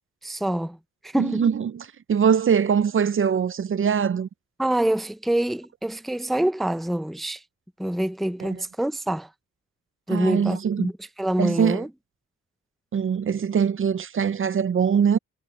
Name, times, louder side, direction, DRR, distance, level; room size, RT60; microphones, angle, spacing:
voice 1, 0.2-0.8 1.0-1.5 4.6-7.4 7.8-9.3 10.1-10.9 11.2-11.9, right 1 dB, ahead, 0.5 m, -25 dB
voice 2, 1.2-4.3 8.4-8.6 10.1-10.9 11.4-11.8 12.9-15.2, right 7 dB, 45° right, 0.6 m, -22 dB
cardioid pair, 95°, 29 cm